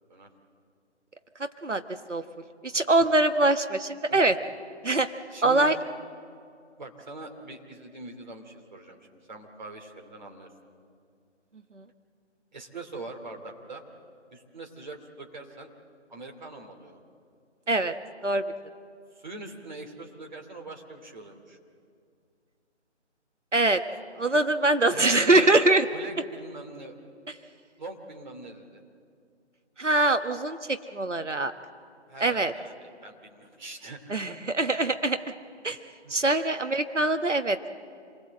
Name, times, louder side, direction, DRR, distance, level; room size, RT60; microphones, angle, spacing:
voice 1, 1.4-2.2 2.6-4.4 4.8-5.1 5.4-5.8 11.7-11.8 17.7-18.0 18.2-18.5 23.5-23.8 24.2-25.9 29.8-31.5 32.2-32.5 34.1-35.2 35.6-35.8 36.1-37.7, right 2 dB, 85° right, 9 dB, 1.2 m, -23 dB
voice 2, 5.3-5.7 6.8-9.0 9.3-10.5 12.5-13.8 14.3-15.7 16.1-17.0 19.1-21.6 25.2-25.4 25.9-27.0 27.8-28.8 32.1-32.7 33.0-34.3 36.0-36.1, right 2 dB, 40° right, 2 dB, 2.7 m, -42 dB
27.0 x 20.0 x 7.7 m, 2.3 s
figure-of-eight pair, 155°, 35 cm